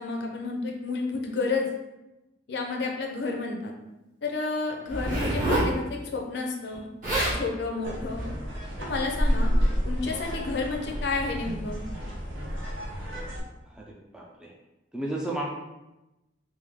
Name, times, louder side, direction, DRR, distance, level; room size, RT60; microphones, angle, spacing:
voice 1, 0.0-1.7 2.5-3.7 4.2-6.9 7.3-8.3 8.8-9.5 9.8-11.8, left 3 dB, 60° left, 1 dB, 0.5 m, -31 dB
Zipper (clothing), 4.9-5.7 6.7-6.8 7.0-7.4 8.1-8.3, right 1 dB, 45° right, 1.4 m, -26 dB
sound 1, 7.8-13.4, equal, 85° right, 0.8 m, -29 dB
voice 2, 14.1-14.5 14.9-15.5, right 1 dB, 5° right, -3 dB, 0.3 m, -32 dB
3.3 x 2.6 x 3.5 m, 0.99 s
head